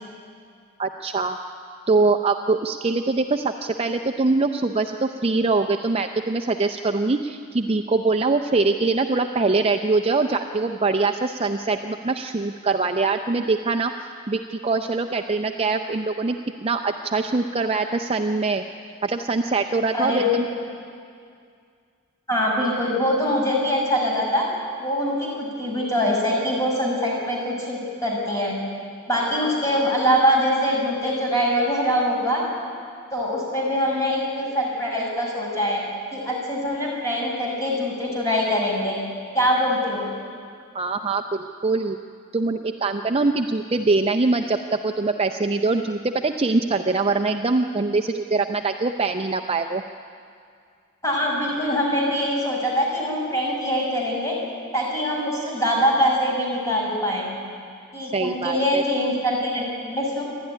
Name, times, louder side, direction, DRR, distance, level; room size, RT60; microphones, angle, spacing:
voice 1, 0.8-1.4 1.9-13.9 14.3-16.4 16.6-18.6 19.0-20.2 40.7-42.0 42.3-49.8 58.1-58.8, right 3 dB, 25° right, 5 dB, 0.5 m, -23 dB
voice 2, 22.3-24.5 24.8-28.5 29.1-32.4 33.1-35.8 36.1-39.0 39.3-40.0 51.0-54.3 54.7-57.3 57.9-60.2, equal, 15° left, -3 dB, 6.1 m, -23 dB
28.0 x 12.0 x 9.9 m, 2.3 s
head